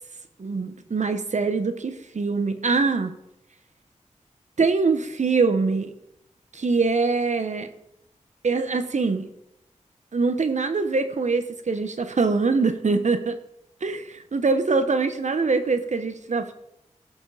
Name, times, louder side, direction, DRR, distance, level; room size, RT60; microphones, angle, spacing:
voice 1, 0.4-3.1 4.6-5.9 6.5-7.7 8.4-9.3 10.1-13.4 13.8-16.5, right 4 dB, 65° right, 9 dB, 1.1 m, -23 dB
16.0 x 6.8 x 4.1 m, 0.83 s
cardioid pair, 50°, 13 cm